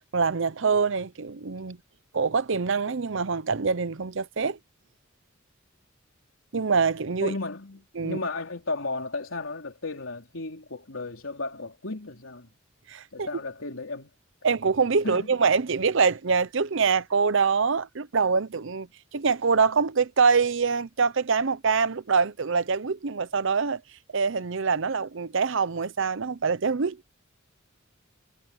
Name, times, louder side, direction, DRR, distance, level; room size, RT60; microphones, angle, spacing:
voice 1, 0.1-1.8 2.1-4.6 6.5-7.3 8.0-8.2 12.9-13.3 14.4-23.8 24.1-27.0, right 5 dB, 65° right, 0.7 m, -24 dB
voice 2, 7.2-12.5 13.1-14.1 15.0-15.3, left 3 dB, 75° left, 3.6 m, -34 dB
head